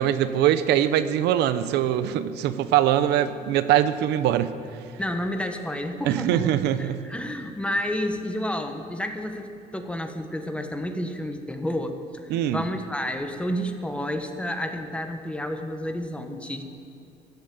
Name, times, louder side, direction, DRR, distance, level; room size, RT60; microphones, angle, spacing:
voice 1, 0.0-4.5 6.0-7.1 12.3-12.6, right 11 dB, 80° right, 12 dB, 0.7 m, -22 dB
voice 2, 5.0-6.5 6.8-16.6, left 1 dB, 5° left, 6 dB, 1.4 m, -30 dB
15.0 x 11.0 x 7.8 m, 2.7 s
cardioid pair, 110°, 17 cm